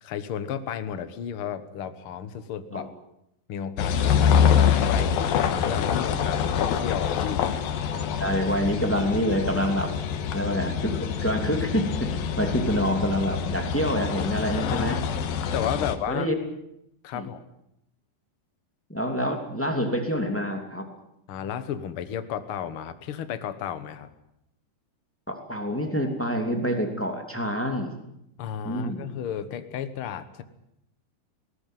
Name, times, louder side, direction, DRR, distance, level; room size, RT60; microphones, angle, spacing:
voice 1, 0.0-2.9 3.5-7.5 14.7-14.9 15.5-16.3 17.0-17.4 21.3-24.1 28.4-30.4, left 9 dB, 60° left, 11 dB, 1.5 m, -33 dB
sound 1, 3.8-16.0, left 7 dB, 85° left, 3.1 m, -25 dB
voice 2, 7.9-9.9 10.3-15.0 15.8-16.3 17.1-17.3 18.9-20.9 25.3-27.9 28.6-29.1, equal, 5° left, 4 dB, 2.2 m, -27 dB
19.5 x 18.5 x 9.2 m, 0.80 s
omnidirectional pair, 4.1 m